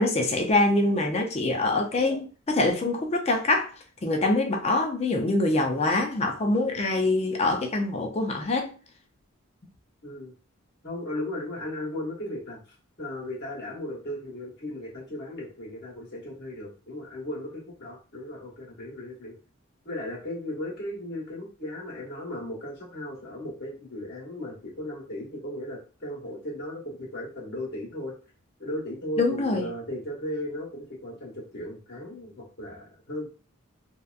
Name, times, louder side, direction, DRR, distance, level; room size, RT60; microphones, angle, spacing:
voice 1, 0.0-3.7 4.0-8.7 29.2-29.7, left 2 dB, 30° left, 0.4 m, -24 dB
voice 2, 10.0-10.3 10.8-12.6 13.0-19.4 19.8-28.1 28.6-33.3, left 1 dB, 55° left, 1.2 m, -36 dB
2.7 x 2.2 x 2.4 m
head